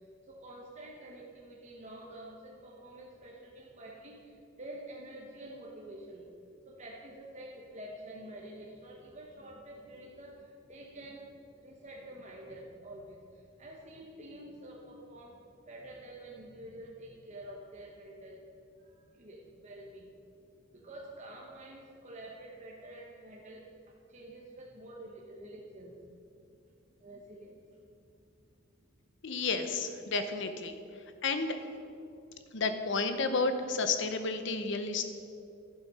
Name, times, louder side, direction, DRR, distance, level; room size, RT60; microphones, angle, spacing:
voice 1, 0.3-11.3 11.5-20.1 20.7-23.6 24.1-26.0 27.0-27.6, right 1 dB, 35° right, -2 dB, 1.0 m, -48 dB
voice 2, 29.2-30.8 31.2-31.6 32.5-35.1, left 4 dB, 65° left, 8 dB, 0.8 m, -31 dB
11.5 x 7.5 x 5.5 m, 2.6 s
head